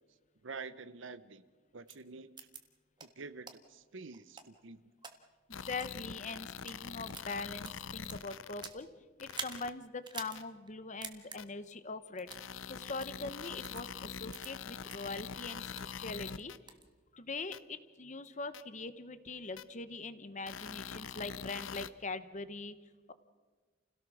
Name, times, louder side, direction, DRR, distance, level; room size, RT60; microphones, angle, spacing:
voice 1, 0.4-1.4 1.7-2.3 3.0-4.8, right 4 dB, 70° right, 15 dB, 0.9 m, -47 dB
sound 1, 1.9-2.0 2.4-2.6 3.0-3.1 3.5-3.6 4.1-5.1 5.7-5.9 6.4-6.8 7.1-8.8 9.3-9.6 10.0-10.4 10.7-10.8 11.0-11.4 12.2-12.5 13.0-13.1 13.6-13.8 14.3-14.5 14.9-15.0 15.4-15.9 16.3-16.8, right 5 dB, 25° right, 1.5 m, -45 dB
sound 2, 5.5-8.7 9.2-9.7 10.4-10.5 11.4-11.5 12.3-16.6 17.5-17.6 18.5-18.6 19.6-19.7 20.5-21.9, left 6 dB, 90° left, 0.8 m, -44 dB
voice 2, 5.5-8.9 9.2-12.3 12.7-16.5 17.1-22.8, left 3 dB, 40° left, 12 dB, 1.1 m, -42 dB
29.0 x 17.0 x 6.4 m, 1.4 s
head